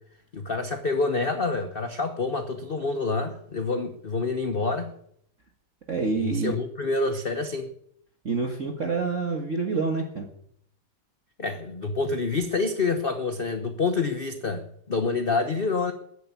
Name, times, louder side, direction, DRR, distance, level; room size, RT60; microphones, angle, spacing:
voice 1, 0.3-4.9 6.2-7.7 11.4-15.9, left 3 dB, 40° left, 8 dB, 0.8 m, -27 dB
voice 2, 5.9-6.6 8.2-10.3, right 4 dB, 40° right, 2 dB, 1.9 m, -27 dB
14.5 x 8.1 x 9.7 m, 0.69 s
omnidirectional pair, 2.3 m